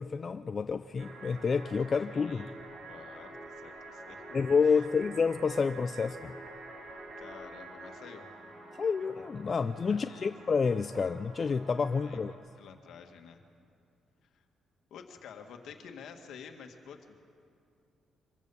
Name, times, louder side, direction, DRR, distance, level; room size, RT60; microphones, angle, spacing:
voice 1, 0.0-2.5 4.3-6.3 8.8-12.3, left 5 dB, 40° left, 10 dB, 0.4 m, -29 dB
sound 1, 1.0-12.3, right 2 dB, 55° right, 4.6 m, -47 dB
voice 2, 2.1-2.5 2.9-4.2 4.6-4.9 7.2-8.3 9.9-10.3 12.0-13.4 14.9-17.1, left 7 dB, 75° left, 5 dB, 1.8 m, -50 dB
24.5 x 15.5 x 7.0 m, 2.4 s
cardioid pair, 90°, 0 cm